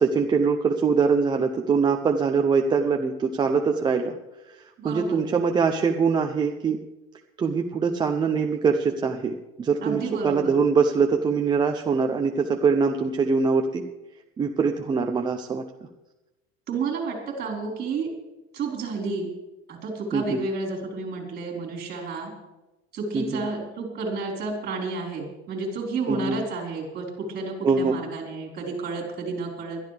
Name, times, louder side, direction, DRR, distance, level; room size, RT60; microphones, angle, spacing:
voice 1, 0.0-4.2 4.8-6.8 7.4-13.9 14.4-15.6 20.1-20.4 23.1-23.4 26.1-26.4 27.6-28.0, right 5 dB, 15° right, 3 dB, 0.5 m, -23 dB
voice 2, 4.8-5.3 9.8-10.5 16.7-18.1 18.5-19.3 19.7-22.3 22.9-29.8, right 4 dB, 30° right, -1 dB, 4.4 m, -31 dB
21.0 x 12.5 x 3.4 m, 1.0 s
cardioid pair, 170°, 31 cm